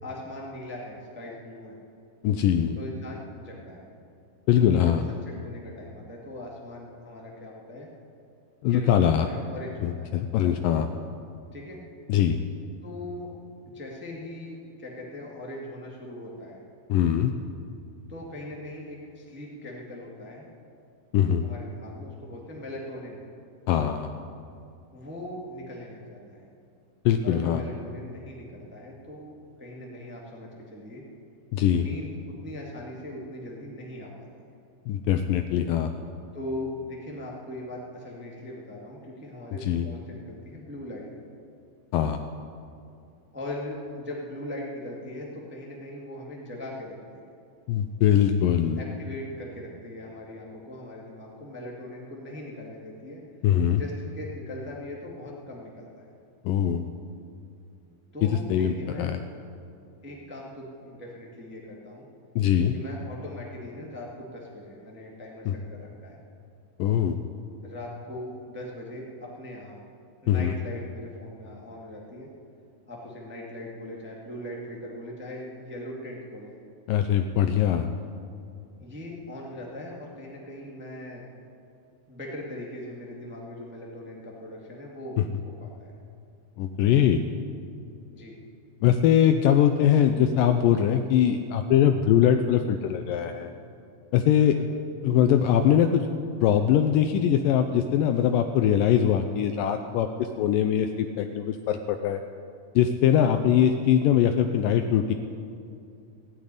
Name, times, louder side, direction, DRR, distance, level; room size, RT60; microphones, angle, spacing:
voice 1, 0.0-1.8 2.7-3.9 4.5-7.9 8.7-10.1 11.5-11.8 12.8-13.3 13.7-16.6 18.1-20.5 21.4-23.2 24.9-26.5 27.2-31.0 31.7-34.5 36.3-41.1 43.3-47.3 48.8-53.2 53.7-56.1 58.1-59.1 60.0-62.0 62.7-66.2 67.6-69.8 70.2-72.3 72.9-76.6 78.8-81.3 82.1-85.2 85.6-85.9 88.1-88.3 94.4-94.6, left 1 dB, 5° right, -3 dB, 1.0 m, -40 dB
voice 2, 2.2-2.8 4.5-5.0 8.6-9.3 9.8-10.9 12.1-12.4 16.9-17.3 21.1-21.4 23.7-24.1 27.1-27.6 31.5-31.8 34.9-35.9 39.6-39.9 41.9-42.2 47.7-48.8 53.4-53.8 56.5-56.8 58.2-59.2 62.4-62.7 65.5-65.6 66.8-67.2 70.3-70.5 76.9-77.9 85.2-85.3 86.6-87.2 88.8-93.5 94.1-94.6 95.0-96.1 96.4-102.2 102.8-105.1, left 9 dB, 80° left, 7 dB, 2.0 m, -22 dB
16.0 x 8.8 x 9.9 m, 2.5 s
omnidirectional pair, 4.4 m